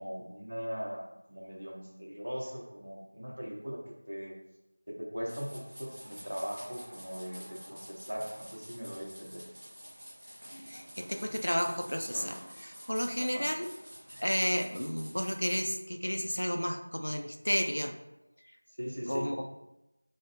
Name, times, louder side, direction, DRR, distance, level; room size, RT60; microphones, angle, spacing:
voice 1, 0.0-4.4 4.9-9.4 13.2-13.5 18.8-19.3, equal, 55° right, -2 dB, 0.8 m, -40 dB
sound 1, 5.3-15.6, equal, 25° right, 0.9 m, -49 dB
voice 2, 10.7-13.7 14.2-18.0 19.1-19.4, equal, 70° left, 6 dB, 0.3 m, -32 dB
3.5 x 2.0 x 3.2 m, 0.93 s
figure-of-eight pair, 175°, 0 cm